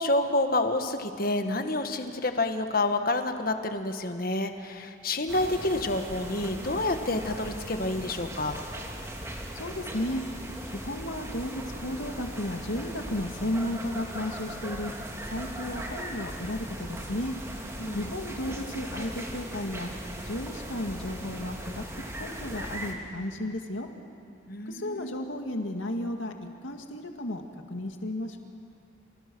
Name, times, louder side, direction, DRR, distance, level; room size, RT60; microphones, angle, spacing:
voice 1, 0.0-8.6 17.8-18.1 24.5-25.1, left 2 dB, 50° left, 6 dB, 1.6 m, -28 dB
sound 1, 5.3-22.9, right 1 dB, 15° right, 2.6 m, -39 dB
voice 2, 9.5-10.2 10.7-14.9 15.3-17.3 17.9-19.9 20.2-21.8 22.2-23.9 24.7-26.3 26.6-28.4, left 1 dB, 85° left, 4 dB, 2.2 m, -33 dB
29.5 x 29.0 x 6.3 m, 2.5 s
head